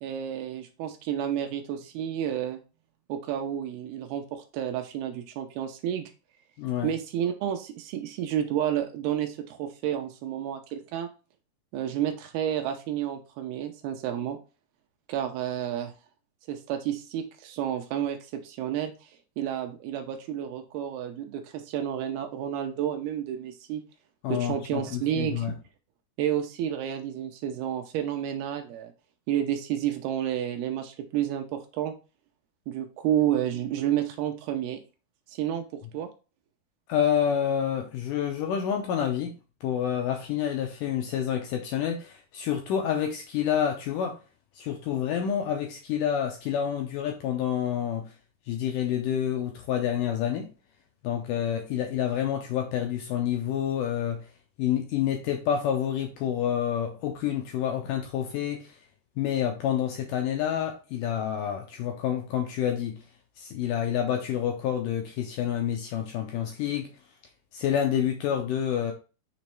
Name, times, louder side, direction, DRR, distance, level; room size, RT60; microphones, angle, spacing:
voice 1, 0.0-2.6 3.1-6.1 6.8-11.1 11.7-14.4 15.1-15.9 16.5-19.1 19.4-23.8 24.3-25.5 26.2-28.9 29.3-31.9 32.7-34.8 35.3-35.6 35.9-36.1, right 10 dB, 80° right, 2.5 m, -30 dB
voice 2, 6.6-6.9 24.2-25.5 36.9-39.4 39.6-44.2 44.6-48.1 48.5-50.5 51.0-54.3 54.6-58.8 59.2-63.0 63.4-66.9 67.5-68.9, left 9 dB, 85° left, 1.9 m, -28 dB
6.9 x 3.1 x 4.4 m
omnidirectional pair, 4.7 m